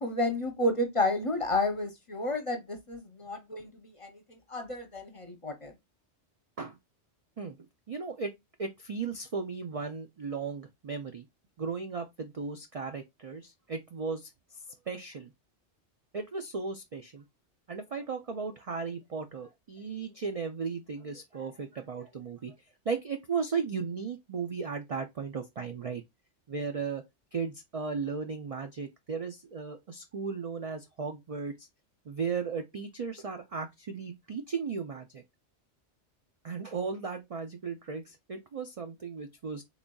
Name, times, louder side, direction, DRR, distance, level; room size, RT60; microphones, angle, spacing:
voice 1, 0.0-5.7, left 2 dB, 30° left, 0.7 m, -31 dB
voice 2, 7.9-8.3 8.6-11.3 11.6-14.6 14.9-15.3 16.1-17.2 17.7-22.5 22.9-26.0 26.5-27.0 27.3-31.7 32.1-35.2 36.4-39.6, right 5 dB, 50° right, 0.4 m, -36 dB
3.9 x 3.5 x 2.3 m
omnidirectional pair, 1.2 m